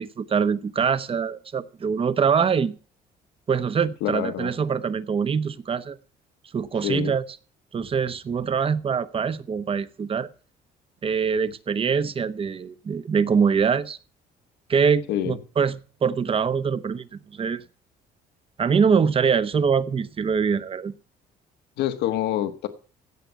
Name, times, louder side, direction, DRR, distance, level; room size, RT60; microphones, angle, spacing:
voice 1, 0.0-2.8 3.5-6.0 6.5-7.2 7.7-10.3 11.0-14.0 14.7-17.6 18.6-20.9, right 6 dB, 35° right, 1.0 m, -24 dB
voice 2, 4.0-4.5 6.8-7.1 15.1-15.4 21.8-22.7, left 12 dB, 80° left, 1.5 m, -26 dB
16.5 x 6.1 x 8.2 m
cardioid pair, 110°, 17 cm